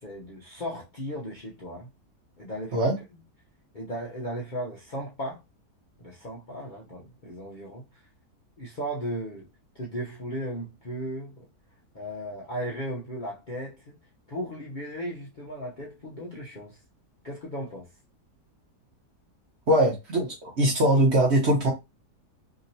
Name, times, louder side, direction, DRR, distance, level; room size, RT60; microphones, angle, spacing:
voice 1, 0.0-1.9 2.4-2.9 3.7-5.4 6.0-7.8 8.6-9.5 9.7-11.5 11.9-14.0 14.3-16.8 17.2-17.9, equal, 45° left, 0.6 m, -36 dB
voice 2, 19.7-21.7, right 1 dB, 50° right, 1.0 m, -21 dB
2.9 x 2.8 x 2.7 m
omnidirectional pair, 1.8 m